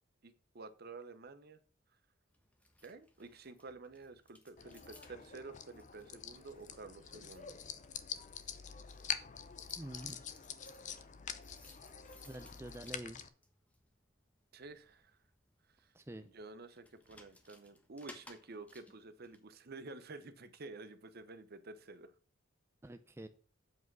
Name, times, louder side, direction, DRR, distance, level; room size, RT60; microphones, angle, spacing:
voice 1, 0.2-1.6 2.8-7.5 14.5-15.2 15.8-15.9 16.2-22.1, right 3 dB, 50° right, 12 dB, 0.8 m, -51 dB
sound 1, 2.3-19.4, left 1 dB, 5° left, 1.1 m, -63 dB
sound 2, 4.6-13.3, left 8 dB, 35° left, 0.6 m, -46 dB
voice 2, 9.8-10.2 12.3-13.2 15.9-16.3 22.8-23.3, right 1 dB, 10° right, 8 dB, 0.4 m, -47 dB
8.2 x 4.9 x 6.1 m, 0.39 s
head